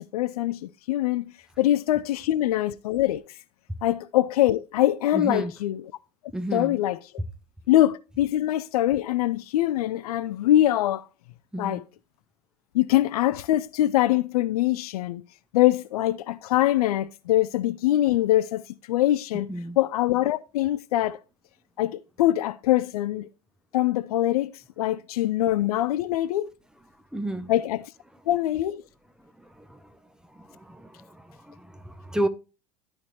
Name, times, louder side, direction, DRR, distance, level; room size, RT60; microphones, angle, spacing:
voice 1, 0.0-3.2 3.8-5.8 6.5-7.0 7.7-11.0 11.6-11.8 12.7-15.2 15.5-19.5 19.8-21.2 21.8-23.3 23.7-26.5 27.5-27.9 28.3-28.8, left 14 dB, 65° left, 0.5 m, -23 dB
voice 2, 5.1-5.5 6.3-6.8 11.5-11.8 19.5-19.8 27.1-27.5 29.4-29.9 30.3-32.3, right 1 dB, 5° right, 0.9 m, -32 dB
12.5 x 4.7 x 3.1 m
figure-of-eight pair, 80°, 21 cm